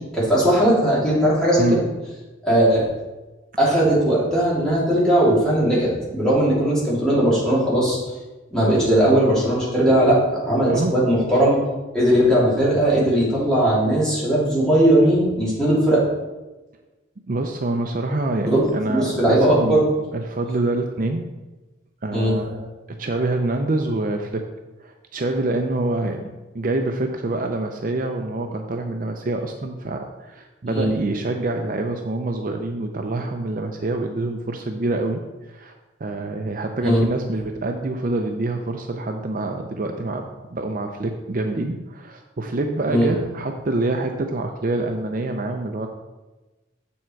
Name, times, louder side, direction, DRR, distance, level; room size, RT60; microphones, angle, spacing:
voice 1, 0.1-1.8 2.4-2.8 3.6-8.0 8.5-10.2 10.4-11.6 11.9-16.0 18.5-18.6 18.9-19.8 22.1-22.3 30.7-30.9 36.8-37.0 42.9-43.1, right 1 dB, 5° left, -8 dB, 3.0 m, -18 dB
voice 2, 1.6-1.9 10.6-11.0 17.3-19.8 20.1-21.2 22.0-24.5 24.8-26.3 26.5-35.8 36.0-40.3 40.5-45.9, right 2 dB, 45° right, 4 dB, 0.5 m, -26 dB
7.3 x 7.1 x 4.6 m, 1.1 s
head